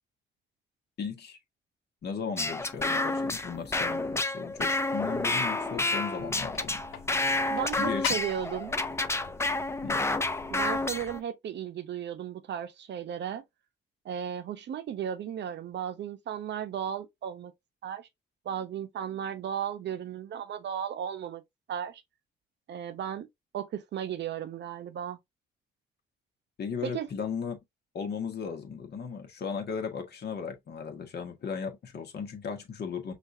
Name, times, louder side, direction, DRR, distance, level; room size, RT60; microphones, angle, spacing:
voice 1, 1.0-1.4 2.0-6.8 7.8-8.1 9.8-10.1 26.6-27.6 27.9-33.1, left 6 dB, 55° left, 1.5 m, -36 dB
sound 1, 2.4-11.2, left 2 dB, 15° left, 0.5 m, -30 dB
sound 2, 6.2-11.2, left 8 dB, 80° left, 1.0 m, -42 dB
voice 2, 7.5-8.8 10.5-13.4 14.0-17.5 17.8-18.1 18.4-21.4 21.7-22.0 22.7-23.3 23.5-25.2 26.8-27.1, right 9 dB, 60° right, 0.8 m, -35 dB
5.8 x 2.6 x 2.7 m
cardioid pair, 90°, 20 cm